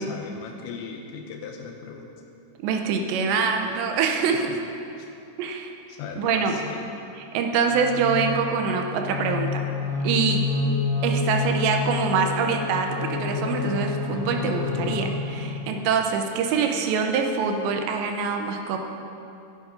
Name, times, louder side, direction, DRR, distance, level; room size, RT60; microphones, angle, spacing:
voice 1, 0.0-2.1 4.5-4.6 5.0-5.1 5.9-6.8, left 6 dB, 85° left, 2 dB, 3.0 m, -38 dB
voice 2, 2.6-4.6 5.4-5.7 6.2-6.6 7.1-9.7 10.0-10.4 11.0-18.8, right 5 dB, 80° right, 4 dB, 3.0 m, -25 dB
sound 1, 7.7-15.6, left 4 dB, 35° left, 3.2 m, -28 dB
11.5 x 9.8 x 5.1 m, 2.7 s
omnidirectional pair, 5.1 m